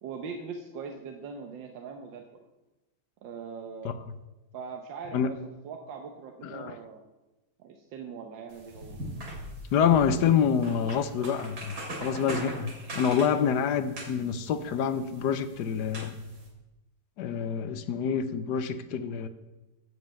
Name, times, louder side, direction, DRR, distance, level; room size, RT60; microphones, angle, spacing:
voice 1, 0.0-2.2 3.2-4.0 4.5-5.4 5.6-7.0 7.6-9.0, right 5 dB, 80° right, 3 dB, 1.6 m, -41 dB
voice 2, 6.4-6.7 9.7-16.1 17.2-19.3, left 7 dB, 70° left, 11 dB, 1.2 m, -27 dB
sound 1, 8.5-16.5, right 1 dB, 60° right, 3.1 m, -41 dB
14.0 x 5.4 x 7.5 m, 1.1 s
omnidirectional pair, 2.0 m